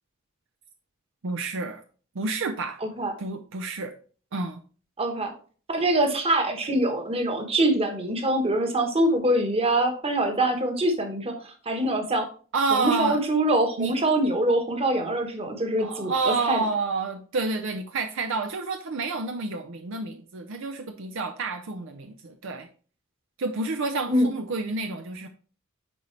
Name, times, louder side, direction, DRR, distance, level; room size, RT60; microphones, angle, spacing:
voice 1, 1.2-1.8 2.2-2.8 3.2-3.9 4.3-4.6 12.5-13.2 13.8-13.9 15.8-22.7 23.4-25.3, right 3 dB, 65° right, 6 dB, 0.6 m, -29 dB
voice 2, 2.8-3.1 5.0-5.3 5.7-12.3 12.7-16.6 24.1-24.3, right 1 dB, 30° right, 5 dB, 1.2 m, -24 dB
9.8 x 4.1 x 3.3 m, 0.40 s
head